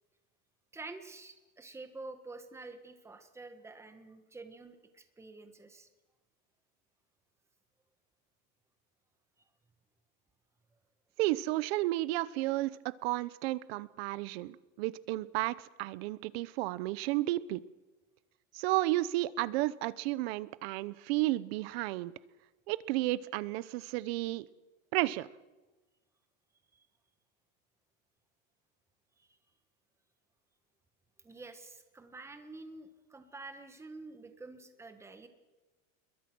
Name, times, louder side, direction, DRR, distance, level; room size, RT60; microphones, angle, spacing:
voice 1, 0.7-5.9 26.7-26.9 29.2-29.4 31.2-35.3, right 3 dB, 5° right, 8 dB, 1.5 m, -48 dB
voice 2, 11.2-17.6 18.5-22.1 22.7-24.5 24.9-25.3, right 18 dB, 50° right, 18 dB, 0.9 m, -32 dB
27.5 x 22.0 x 6.2 m, 1.2 s
supercardioid pair, 170°, 39 cm